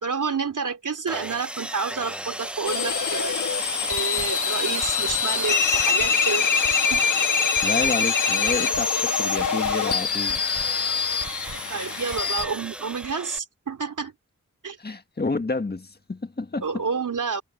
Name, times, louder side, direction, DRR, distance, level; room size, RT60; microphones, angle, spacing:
voice 1, 0.0-3.4 3.9-7.0 11.7-14.1 14.6-14.8 16.6-17.4, right 5 dB, 85° right, 3.1 m, -29 dB
Sawing, 1.1-13.4, equal, 5° right, 0.7 m, -35 dB
sound 1, 2.7-12.4, left 6 dB, 85° left, 1.4 m, -24 dB
sound 2, 3.5-13.2, right 5 dB, 65° right, 3.0 m, -44 dB
voice 2, 7.6-10.4 14.8-16.7, left 3 dB, 30° left, 1.7 m, -29 dB
wide cardioid pair, 95°, 30 cm